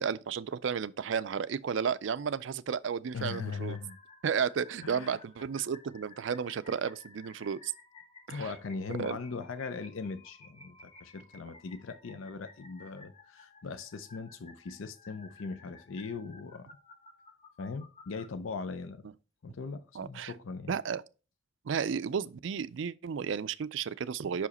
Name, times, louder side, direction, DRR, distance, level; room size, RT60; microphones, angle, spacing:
voice 1, 0.0-3.8 4.2-7.7 8.3-8.5 9.0-9.2 19.9-20.3 20.7-21.0 21.7-24.5, right 7 dB, 65° right, 0.4 m, -33 dB
voice 2, 3.1-4.0 4.8-5.2 8.3-16.7 17.6-19.1 19.4-20.7, left 4 dB, 70° left, 0.5 m, -40 dB
sound 1, 3.3-18.3, left 3 dB, 30° left, 1.0 m, -56 dB
5.7 x 4.9 x 4.1 m
head